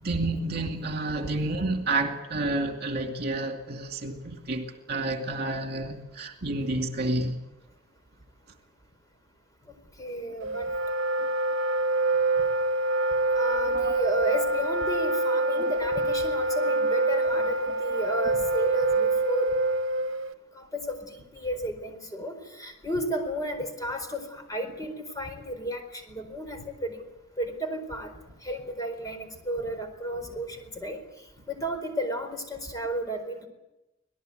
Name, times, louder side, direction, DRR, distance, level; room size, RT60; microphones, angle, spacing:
voice 1, 0.0-7.4 13.7-13.9 15.6-15.8, right 2 dB, 50° right, 3 dB, 2.5 m, -30 dB
voice 2, 10.0-10.7 13.3-19.5 20.5-27.0 27.4-28.1 28.4-31.0 31.5-33.5, equal, 20° left, 6 dB, 4.3 m, -33 dB
Wind instrument woodwind instrument, 10.4-20.3, right 2 dB, 70° right, 1.2 m, -26 dB
25.5 x 18.5 x 8.0 m, 0.96 s
head